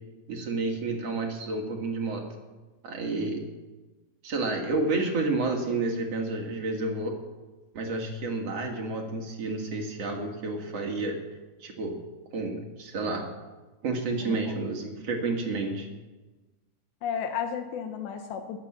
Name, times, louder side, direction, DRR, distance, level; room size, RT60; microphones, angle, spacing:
voice 1, 0.3-2.2 2.8-3.5 4.2-7.2 7.7-11.2 11.6-11.9 12.3-13.3 13.8-15.9, right 3 dB, 50° right, 2 dB, 2.1 m, -30 dB
voice 2, 14.2-14.6 17.0-18.6, left 7 dB, 80° left, 6 dB, 3.1 m, -33 dB
21.0 x 7.7 x 7.3 m, 1.2 s
omnidirectional pair, 5.0 m